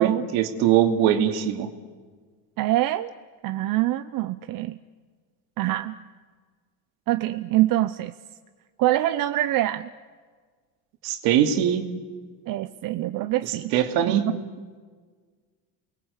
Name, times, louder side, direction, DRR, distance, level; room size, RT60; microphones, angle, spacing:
voice 1, 0.0-1.7 11.0-11.9 13.4-14.2, right 10 dB, 80° right, 5 dB, 2.7 m, -22 dB
voice 2, 2.6-3.1 3.4-4.8 5.6-5.9 7.1-8.1 8.8-9.9 12.5-13.7 14.1-14.3, right 15 dB, 60° right, 10 dB, 0.8 m, -24 dB
29.0 x 21.0 x 8.3 m, 1.5 s
cardioid pair, 110°, 38 cm